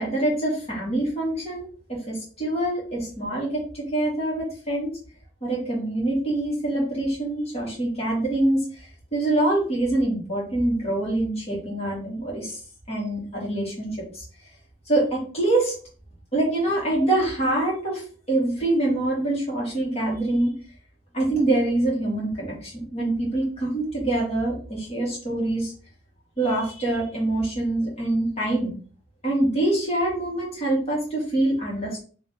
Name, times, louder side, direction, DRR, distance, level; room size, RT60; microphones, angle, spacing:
voice 1, 0.0-4.9 5.4-12.6 12.9-14.2 14.9-15.7 16.3-20.5 21.1-25.7 26.4-28.7 29.2-32.0, right 1 dB, 35° left, -5 dB, 2.1 m, -25 dB
3.6 x 3.1 x 3.9 m, 0.41 s
head